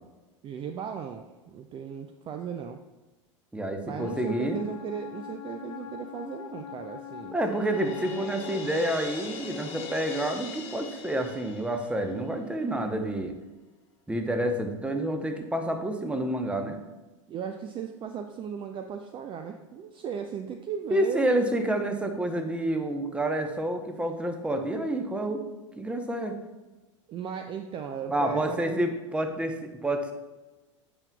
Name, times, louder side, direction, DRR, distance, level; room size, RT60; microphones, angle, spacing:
voice 1, 0.4-2.8 3.8-7.3 17.3-21.3 27.1-28.8, right 7 dB, 30° right, 6 dB, 0.5 m, -36 dB
voice 2, 3.5-4.6 7.3-13.3 14.1-16.8 20.9-25.4 25.8-26.4 28.1-30.1, right 1 dB, 5° right, 5 dB, 0.9 m, -29 dB
Wind instrument woodwind instrument, 3.9-8.7, left 7 dB, 85° left, 1.0 m, -42 dB
Crash cymbal, 7.4-12.3, left 5 dB, 40° left, 1.3 m, -41 dB
8.7 x 6.2 x 2.3 m, 1.1 s
hypercardioid pair, 90°, 16 cm